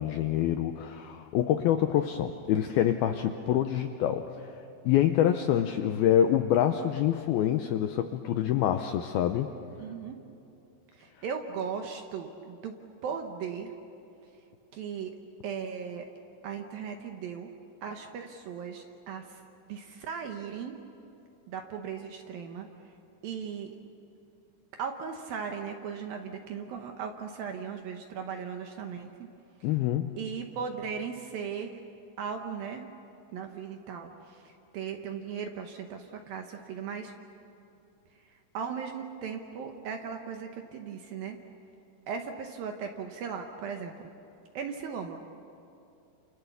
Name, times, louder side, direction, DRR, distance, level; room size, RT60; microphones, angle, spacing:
voice 1, 0.0-4.5 4.8-9.5 29.6-30.2, left 11 dB, 85° left, 7 dB, 2.2 m, -26 dB
voice 2, 9.8-10.2 10.9-12.7 13.0-13.7 14.7-15.1 15.4-16.1 16.4-17.5 17.8-19.4 19.7-20.7 21.5-22.7 23.2-23.7 24.8-29.1 29.6-29.7 30.2-31.8 32.2-32.9 33.3-37.1 38.5-41.4 42.1-44.1 44.5-45.2, right 6 dB, 70° right, 4 dB, 2.4 m, -37 dB
29.5 x 29.0 x 7.0 m, 2.7 s
omnidirectional pair, 5.4 m